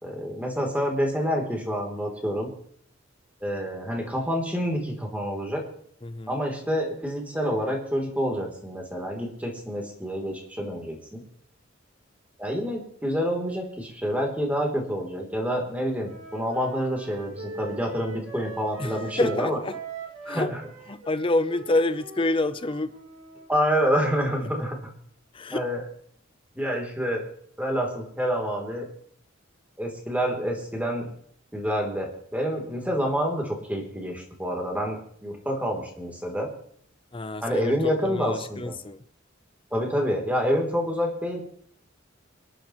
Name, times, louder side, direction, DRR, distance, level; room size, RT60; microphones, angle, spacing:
voice 1, 0.0-2.5 3.4-5.6 6.3-11.2 12.4-19.6 20.2-20.6 23.5-24.8 25.5-25.8 26.5-27.3 27.6-28.9 29.8-31.1 31.5-36.5 37.4-38.8 39.7-41.4, equal, 10° right, 3.3 m, -28 dB
voice 2, 6.0-6.3 18.8-19.8 20.3-20.5 20.9-22.9 25.3-25.6 37.1-37.8 38.0-39.0, left 2 dB, 25° left, 0.7 m, -27 dB
Wind instrument woodwind instrument, 16.0-23.5, right 4 dB, 85° right, 2.5 m, -41 dB
27.5 x 11.5 x 3.1 m
head